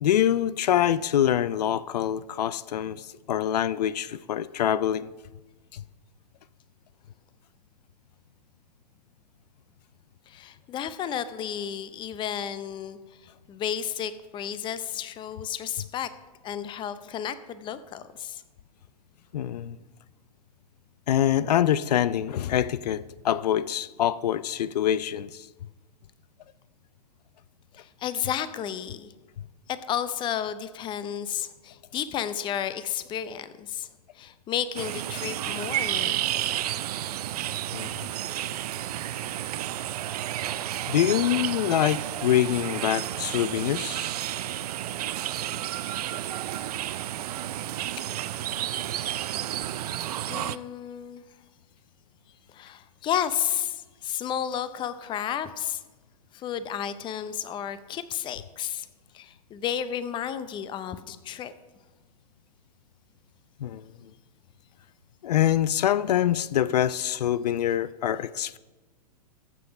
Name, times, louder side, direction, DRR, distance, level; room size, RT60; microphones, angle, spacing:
voice 1, 0.0-5.1 5.7-5.8 19.3-19.8 21.1-25.5 37.7-37.9 40.9-44.1 63.6-63.8 65.2-68.6, left 11 dB, 80° left, 0.4 m, -25 dB
voice 2, 10.3-13.0 13.5-16.1 16.4-18.4 27.8-29.1 29.7-33.9 34.1-36.8 50.3-51.2 52.5-55.8 56.3-58.9 59.1-61.5, left 9 dB, 25° left, 0.6 m, -32 dB
sound 1, 34.8-50.6, right 12 dB, 70° right, 0.5 m, -31 dB
15.0 x 6.1 x 5.2 m
hypercardioid pair, 120°, 20 cm